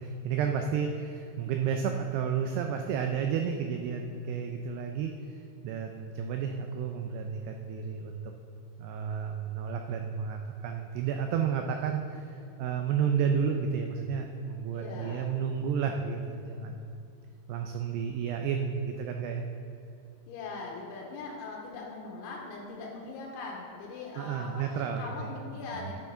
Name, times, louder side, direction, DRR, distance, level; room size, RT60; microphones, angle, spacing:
voice 1, 0.0-8.3 8.8-16.9 17.5-19.4 24.2-25.4 25.8-25.9, right 7 dB, 90° right, 4 dB, 2.3 m, -32 dB
voice 2, 14.7-15.3 20.3-24.7 25.0-25.9, left 3 dB, 90° left, -2 dB, 3.3 m, -40 dB
9.2 x 9.2 x 3.7 m, 2.6 s
omnidirectional pair, 5.3 m